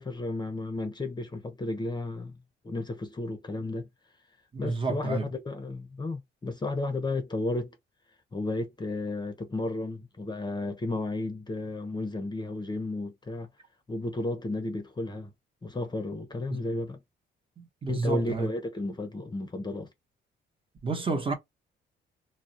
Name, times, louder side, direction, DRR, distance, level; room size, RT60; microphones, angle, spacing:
voice 1, 0.0-2.4 2.6-3.9 4.6-7.8 8.3-13.5 13.9-15.3 15.6-17.0 17.9-19.9, left 2 dB, 20° left, 0.6 m, -33 dB
voice 2, 4.5-5.3 16.5-16.6 17.6-18.5 20.8-21.3, right 4 dB, 25° right, 0.9 m, -30 dB
2.2 x 2.1 x 2.6 m
cardioid pair, 90°, 20 cm